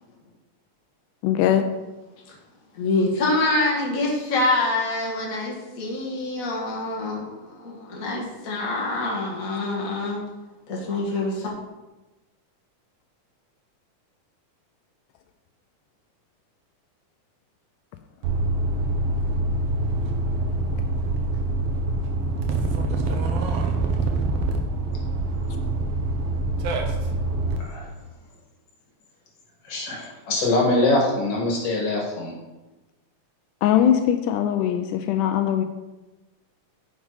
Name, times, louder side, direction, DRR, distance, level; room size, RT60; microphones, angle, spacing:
voice 1, 1.2-1.7 33.6-35.6, left 10 dB, 85° left, 7 dB, 2.1 m, -21 dB
voice 2, 2.7-10.2 10.7-11.5, left 2 dB, 35° left, -3 dB, 1.7 m, -25 dB
sound 1, 18.2-27.6, right 2 dB, 65° right, 1.6 m, -25 dB
voice 3, 29.7-32.3, left 2 dB, 50° left, -2 dB, 2.8 m, -23 dB
9.5 x 6.1 x 4.1 m, 1.1 s
omnidirectional pair, 3.6 m